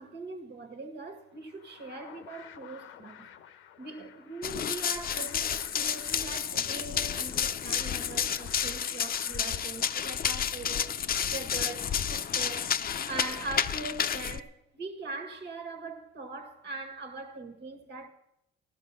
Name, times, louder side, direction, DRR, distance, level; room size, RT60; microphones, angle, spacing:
voice 1, 0.0-3.3 3.8-10.9 11.3-12.7 13.1-18.1, right 3 dB, 60° right, 1.8 m, -41 dB
sound 1, 1.3-10.7, left 10 dB, 85° left, 0.8 m, -52 dB
Run, 4.4-14.4, left 8 dB, 45° left, 0.6 m, -31 dB
15.5 x 11.5 x 5.7 m
cardioid pair, 90°, 20 cm